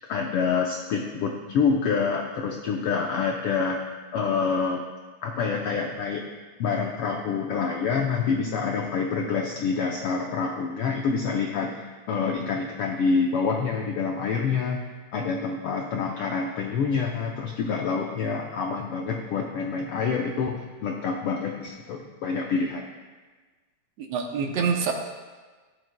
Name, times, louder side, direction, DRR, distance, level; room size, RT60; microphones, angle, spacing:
voice 1, 0.1-3.8 4.1-4.8 5.2-6.2 6.6-11.7 12.1-22.8, left 5 dB, 80° left, 1 dB, 1.3 m, -27 dB
voice 2, 24.0-24.9, right 6 dB, 70° right, 3 dB, 1.8 m, -26 dB
15.0 x 12.0 x 2.2 m, 1.3 s
omnidirectional pair, 3.3 m